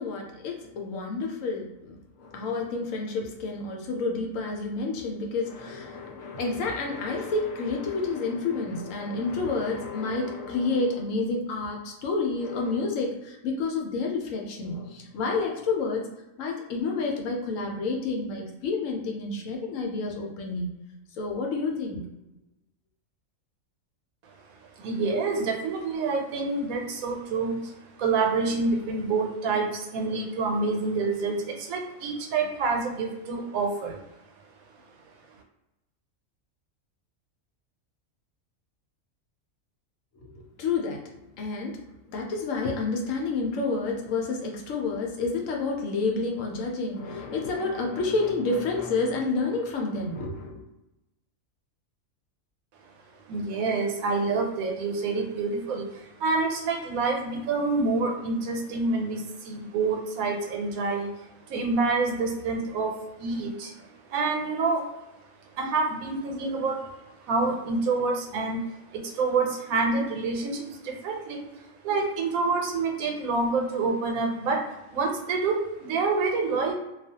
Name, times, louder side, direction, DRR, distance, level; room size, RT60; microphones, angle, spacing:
voice 1, 0.0-16.1 16.4-20.7 21.2-22.0 40.2-41.0 41.3-41.8 42.1-50.6, left 3 dB, 75° left, 0 dB, 1.0 m, -29 dB
voice 2, 24.6-34.0 53.3-64.9 65.6-76.7, right 3 dB, 90° right, 2 dB, 1.1 m, -27 dB
2.3 x 2.3 x 2.7 m, 0.95 s
omnidirectional pair, 1.4 m